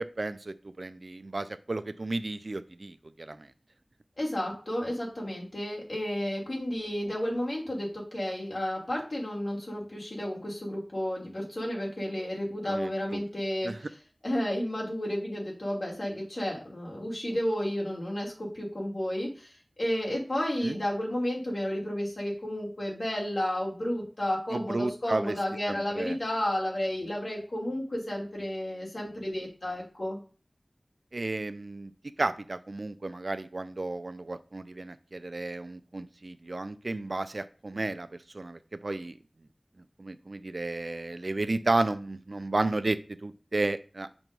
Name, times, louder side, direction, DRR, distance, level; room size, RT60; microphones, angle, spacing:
voice 1, 0.0-3.5 12.6-13.2 13.6-13.8 20.6-20.8 24.5-25.4 25.7-26.2 31.1-31.9 32.2-38.1 38.3-39.2 40.0-44.1, right 2 dB, 65° right, 13 dB, 0.4 m, -33 dB
voice 2, 4.2-13.9 14.2-30.2, left 1 dB, 60° left, -3 dB, 2.6 m, -32 dB
6.1 x 3.0 x 5.2 m, 0.37 s
wide cardioid pair, 50°, 0 cm